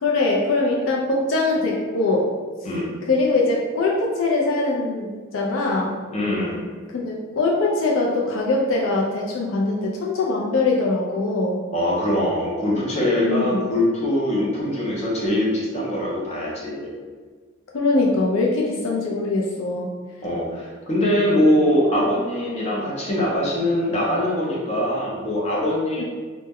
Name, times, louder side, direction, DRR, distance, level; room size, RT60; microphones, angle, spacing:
voice 1, 0.0-2.3 3.1-6.0 6.9-11.6 13.2-13.7 17.7-19.9 26.0-26.1, left 2 dB, 70° left, -2 dB, 0.3 m, -22 dB
voice 2, 6.1-6.6 11.7-16.9 20.2-26.0, left 1 dB, 30° left, -5 dB, 0.6 m, -22 dB
2.1 x 2.0 x 3.4 m, 1.5 s
head